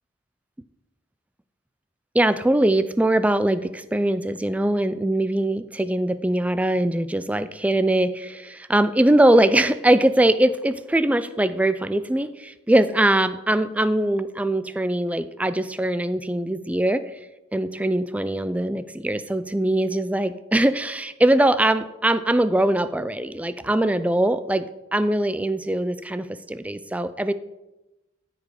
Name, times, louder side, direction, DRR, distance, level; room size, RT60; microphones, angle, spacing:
voice 1, 2.1-17.2 17.5-24.7 24.9-27.3, right 1 dB, 5° right, 12 dB, 0.3 m, -22 dB
13.5 x 5.3 x 4.8 m, 1.0 s
head